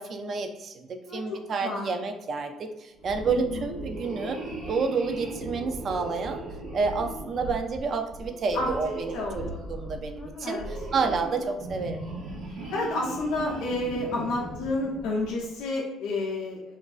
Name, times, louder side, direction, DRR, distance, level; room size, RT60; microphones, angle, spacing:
voice 1, 0.0-4.4 4.7-6.4 6.7-10.6 10.9-12.0, right 4 dB, 50° right, 5 dB, 0.3 m, -29 dB
voice 2, 1.0-1.9 3.3-3.6 8.5-9.9 10.1-10.6 12.7-16.7, left 2 dB, 70° left, -3 dB, 0.4 m, -31 dB
sound 1, 3.0-15.5, right 2 dB, 70° right, 0.7 m, -38 dB
2.4 x 2.3 x 2.2 m, 0.98 s
hypercardioid pair, 50°, 0 cm